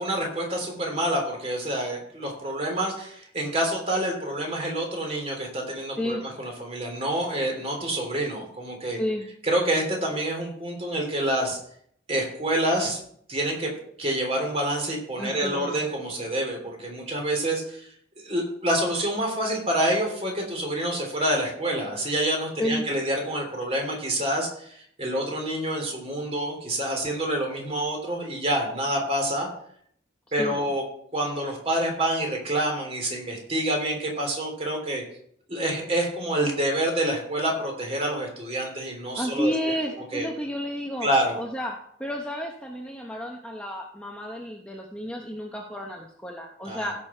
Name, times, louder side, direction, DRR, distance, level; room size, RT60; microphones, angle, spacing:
voice 1, 0.0-9.0 9.4-11.6 12.1-13.0 13.3-13.7 14.0-17.9 18.2-29.5 30.3-30.8 31.1-35.0 35.5-39.5 40.1-40.3 41.0-41.4 46.6-46.9, right 1 dB, 35° right, 1 dB, 3.2 m, -27 dB
voice 2, 8.9-9.3 15.2-15.8 22.6-22.8 30.4-30.6 39.2-41.1 41.4-46.9, equal, 5° left, 0 dB, 0.9 m, -31 dB
16.0 x 6.2 x 4.4 m, 0.65 s
head